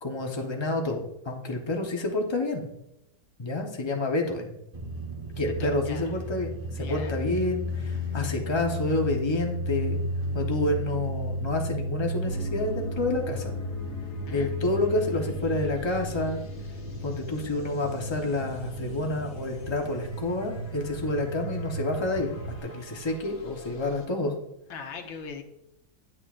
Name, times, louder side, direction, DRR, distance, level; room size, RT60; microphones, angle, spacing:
voice 1, 0.0-2.7 3.4-4.6 5.4-10.0 10.3-13.5 14.3-16.4 17.0-22.3 22.6-24.3, left 2 dB, 30° left, 1 dB, 0.5 m, -29 dB
sound 1, 4.7-22.6, equal, 25° right, 0.8 m, -34 dB
voice 2, 5.6-6.1 6.8-7.2 14.3-14.5 24.7-25.4, left 5 dB, 75° left, 4 dB, 1.8 m, -40 dB
sound 2, 12.2-24.1, left 2 dB, 55° left, 1.6 m, -46 dB
10.5 x 6.5 x 2.5 m, 0.85 s
omnidirectional pair, 2.1 m